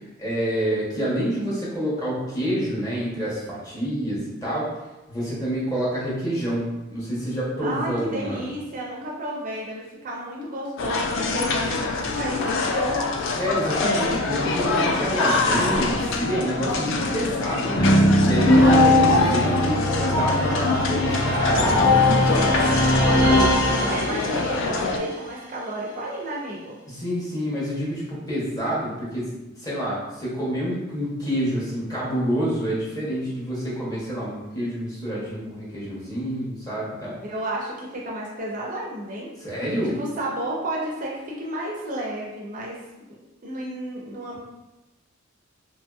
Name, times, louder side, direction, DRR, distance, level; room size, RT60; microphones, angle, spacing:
voice 1, 0.2-4.7 5.1-6.6 6.9-8.5 13.4-17.9 18.2-23.6 26.9-29.3 29.6-37.2 39.4-40.0, equal, 15° left, -8 dB, 0.9 m, -28 dB
voice 2, 7.6-13.1 18.5-18.8 23.7-26.8 37.2-39.3 40.0-42.8 43.1-43.2 43.4-44.4, right 1 dB, 40° right, -3 dB, 0.4 m, -31 dB
sound 1, 10.8-25.0, left 3 dB, 65° left, 0.3 m, -25 dB
sound 2, 17.8-24.5, left 1 dB, 45° left, 1.1 m, -19 dB
2.9 x 2.6 x 2.3 m, 1.0 s
head